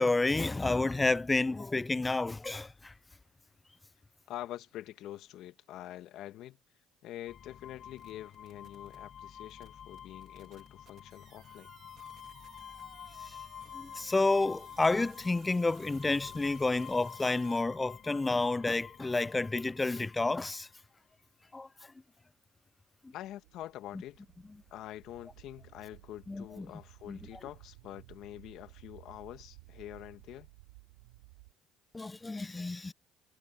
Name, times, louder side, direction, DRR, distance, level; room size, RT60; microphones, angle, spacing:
voice 1, 0.0-2.9 13.2-13.4 13.7-20.7 21.5-21.7 23.0-23.1 26.3-26.7 27.1-27.2 31.9-32.9, left 3 dB, 20° left, 0.4 m, -30 dB
voice 2, 4.3-6.6 7.0-11.7 23.1-24.3 24.7-30.5, left 13 dB, 65° left, 1.9 m, -46 dB
sound 1, 7.3-20.7, left 9 dB, 50° left, 7.6 m, -49 dB
sound 2, 8.0-9.0 9.5-17.6, right 9 dB, 55° right, 4.2 m, -60 dB
sound 3, 23.2-31.5, right 24 dB, 85° right, 3.0 m, -56 dB
hypercardioid pair, 70°, 0 cm